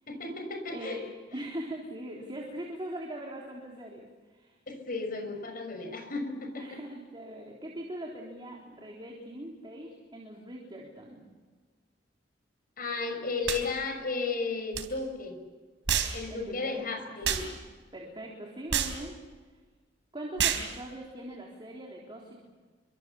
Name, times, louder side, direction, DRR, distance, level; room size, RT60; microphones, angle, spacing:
voice 1, 0.1-1.0 1.3-1.5 4.7-6.8 12.8-15.4 16.1-17.4, left 3 dB, 50° left, 5 dB, 6.0 m, -34 dB
voice 2, 0.7-1.0 1.3-4.6 6.5-11.3 16.3-17.6 17.9-19.2 20.1-22.5, right 1 dB, 25° right, -1 dB, 3.7 m, -41 dB
sound 1, 13.5-13.6 14.7-14.9 15.9-16.2 17.2-17.5 18.7-19.0 20.4-20.7, right 8 dB, 90° right, 3.9 m, -28 dB
29.5 x 25.0 x 7.2 m, 1.4 s
head